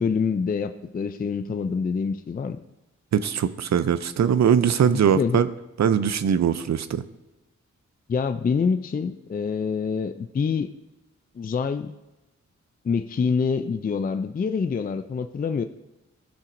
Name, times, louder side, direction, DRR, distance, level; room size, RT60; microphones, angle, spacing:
voice 1, 0.0-2.6 4.8-5.4 8.1-10.7 11.4-11.9 12.8-15.6, left 5 dB, 30° left, 9 dB, 0.4 m, -26 dB
voice 2, 3.1-5.5 5.8-7.0, right 8 dB, 65° right, 13 dB, 0.5 m, -21 dB
15.5 x 5.7 x 2.6 m, 1.0 s
wide cardioid pair, 100°, 29 cm